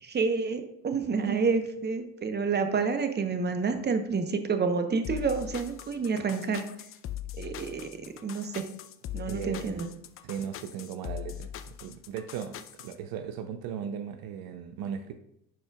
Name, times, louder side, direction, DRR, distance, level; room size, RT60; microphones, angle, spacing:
voice 1, 0.0-6.6 7.4-7.9 8.2-8.7 9.1-9.9, right 5 dB, 20° right, 8 dB, 0.9 m, -29 dB
sound 1, 5.0-13.0, left 11 dB, 30° left, 0.4 m, -41 dB
voice 2, 9.2-9.9 10.2-15.1, right 8 dB, 50° right, 7 dB, 0.6 m, -37 dB
10.5 x 4.3 x 2.3 m, 0.77 s
hypercardioid pair, 75°, 46 cm